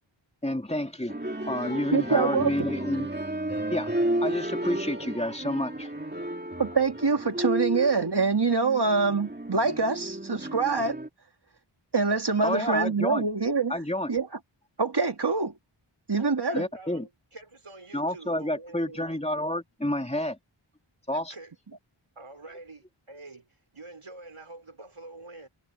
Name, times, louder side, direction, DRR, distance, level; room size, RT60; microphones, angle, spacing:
voice 1, 0.4-1.2 1.5-3.1 3.7-3.9 4.2-5.9 12.4-13.3 13.7-14.1 16.5-17.1 17.9-20.4 21.1-21.3, left 1 dB, 15° left, 2.4 m, -29 dB
sound 1, 1.1-11.1, right 1 dB, 20° right, 2.6 m, -33 dB
voice 2, 1.9-2.5 6.6-11.0 11.9-13.7 14.1-14.3 14.8-15.5 16.1-16.6, right 4 dB, 55° right, 2.3 m, -25 dB
voice 3, 12.4-12.9 16.2-19.2 21.3-21.5 22.2-25.5, right 2 dB, 85° right, 5.5 m, -46 dB
wide cardioid pair, 45°, 49 cm